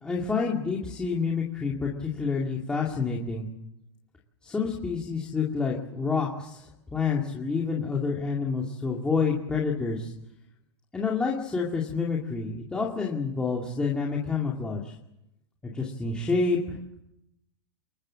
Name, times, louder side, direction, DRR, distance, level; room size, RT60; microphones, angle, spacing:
voice 1, 0.0-3.5 4.4-6.7 6.9-10.1 10.9-14.9 15.6-17.0, left 4 dB, 5° left, -3 dB, 2.2 m, -28 dB
25.0 x 22.0 x 7.5 m, 0.85 s
supercardioid pair, 165°, 15 cm